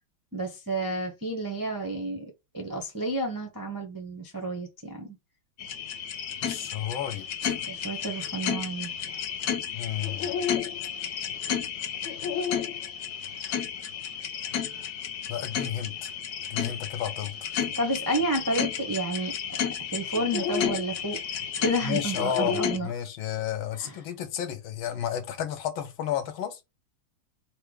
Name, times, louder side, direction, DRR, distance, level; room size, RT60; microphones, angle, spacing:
voice 1, 0.3-5.1 7.7-8.9 17.8-19.3 19.9-22.9 23.8-23.9, right 1 dB, 35° right, 0.3 m, -31 dB
sound 1, 5.6-22.8, left 8 dB, 70° left, 0.9 m, -32 dB
voice 2, 6.4-7.6 9.7-10.3 14.4-14.9 15.3-16.1 16.5-17.5 21.8-26.6, left 10 dB, 90° left, 1.6 m, -32 dB
4.5 x 2.2 x 4.7 m
omnidirectional pair, 2.1 m